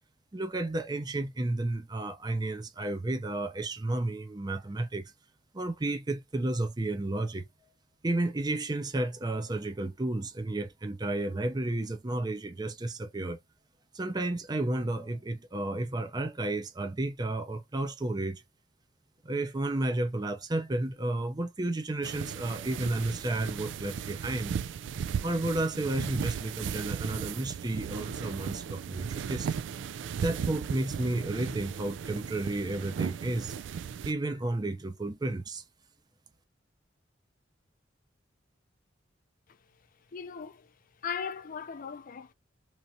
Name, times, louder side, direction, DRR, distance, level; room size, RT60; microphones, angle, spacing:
voice 1, 0.3-5.1 5.5-7.5 8.0-13.4 13.9-18.4 19.2-24.6 25.2-29.6 30.2-33.6 34.0-35.6, right 2 dB, 20° right, 0.5 m, -32 dB
sound 1, 22.0-34.1, right 7 dB, 75° right, 0.3 m, -36 dB
voice 2, 40.1-40.7 41.0-42.3, left 6 dB, 50° left, 0.5 m, -38 dB
3.0 x 2.5 x 2.6 m
head